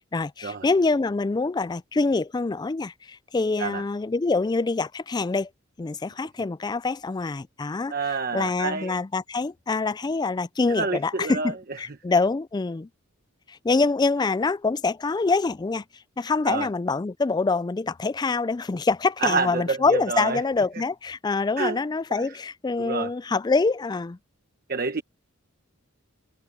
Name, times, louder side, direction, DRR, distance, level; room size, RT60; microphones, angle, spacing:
voice 1, 0.1-5.5 5.8-8.0 8.3-12.9 13.5-15.8 16.2-24.2, left 3 dB, 20° left, 0.3 m, -25 dB
voice 2, 7.9-9.0 10.7-11.8 16.4-16.7 19.2-20.4 21.6-21.8 22.1-22.3 22.8-23.1 24.7-25.0, right 4 dB, 45° right, 1.2 m, -28 dB
head